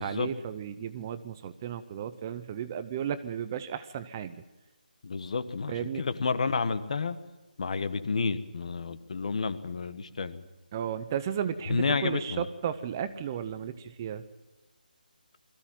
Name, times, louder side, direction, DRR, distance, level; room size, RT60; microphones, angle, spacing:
voice 1, 0.0-4.4 5.7-6.0 10.7-14.2, right 9 dB, 20° right, 12 dB, 0.7 m, -34 dB
voice 2, 5.0-7.2 7.6-10.4 11.7-12.5, left 4 dB, 45° left, 12 dB, 1.4 m, -30 dB
21.5 x 15.0 x 9.0 m, 1.2 s
figure-of-eight pair, 170°, 5 cm